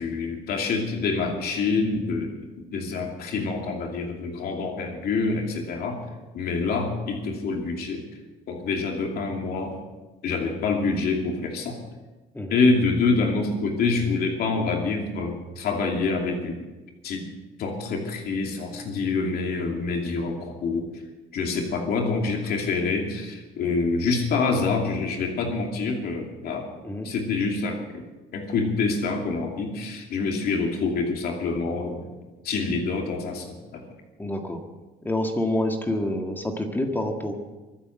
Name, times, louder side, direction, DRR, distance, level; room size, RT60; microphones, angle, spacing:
voice 1, 0.0-6.0 6.3-8.1 8.5-9.8 10.2-11.8 12.5-16.6 17.0-17.3 17.6-21.0 21.3-26.8 27.0-28.1 28.3-32.0 32.4-33.8, left 4 dB, 65° left, 1 dB, 2.6 m, -26 dB
voice 2, 34.2-34.6 35.0-37.3, left 1 dB, 10° left, 3 dB, 1.7 m, -27 dB
23.5 x 8.2 x 6.5 m, 1.2 s
cardioid pair, 110°, 17 cm